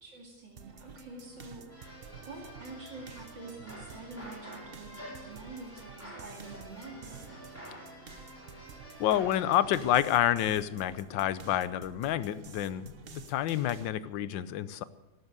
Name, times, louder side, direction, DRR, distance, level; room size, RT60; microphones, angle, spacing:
voice 1, 0.0-7.6, right 2 dB, 70° right, 0 dB, 3.2 m, -47 dB
sound 1, 0.6-13.9, right 6 dB, 40° right, 0.9 m, -50 dB
sound 2, 1.7-9.9, equal, 5° left, 5.1 m, -49 dB
voice 2, 9.0-14.8, left 12 dB, 75° left, 16 dB, 1.4 m, -29 dB
13.0 x 12.0 x 8.1 m, 1.0 s
omnidirectional pair, 2.1 m